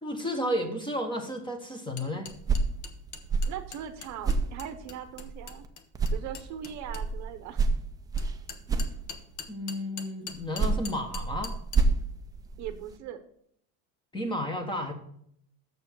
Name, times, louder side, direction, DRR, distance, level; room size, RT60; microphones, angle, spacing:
voice 1, 0.0-2.3 9.5-11.6 14.1-14.9, equal, 10° left, 5 dB, 1.0 m, -32 dB
sound 1, 2.0-7.1 8.2-11.8, left 6 dB, 50° left, 1.1 m, -42 dB
sound 2, 2.3-5.7 5.9-9.5 10.3-13.0, right 4 dB, 10° right, 0.3 m, -30 dB
voice 2, 3.5-5.6 6.1-7.6 12.6-13.2, right 10 dB, 45° right, 9 dB, 0.8 m, -40 dB
6.9 x 6.8 x 6.1 m, 0.69 s
cardioid pair, 155°, 39 cm